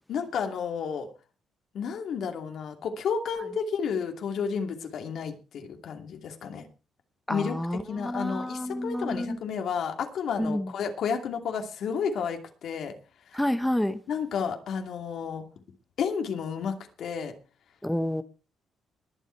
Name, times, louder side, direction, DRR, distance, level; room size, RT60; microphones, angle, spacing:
voice 1, 0.1-1.1 1.7-6.7 7.3-7.5 7.9-12.9 13.3-13.4 14.1-15.5 16.0-17.3, left 6 dB, 70° left, 2.6 m, -31 dB
voice 2, 7.3-9.4 10.4-10.7 13.3-14.0 17.8-18.2, left 1 dB, 5° left, 1.0 m, -29 dB
21.0 x 7.3 x 4.6 m
cardioid pair, 90°, 0 cm